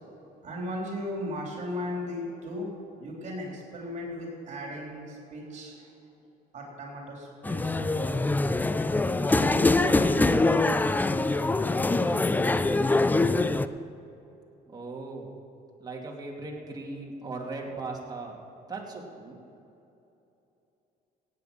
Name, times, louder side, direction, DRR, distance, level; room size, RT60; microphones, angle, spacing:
voice 1, 0.4-2.7 3.0-5.9 6.5-8.3 9.1-10.8, left 1 dB, 45° right, -2 dB, 3.7 m, -37 dB
sound 1, 7.4-13.7, left 2 dB, 10° left, 0.4 m, -24 dB
voice 2, 14.7-15.3 15.8-18.4 18.7-19.4, right 3 dB, 25° right, -2 dB, 2.7 m, -38 dB
17.0 x 8.7 x 5.9 m, 2.9 s
cardioid pair, 110°, 17 cm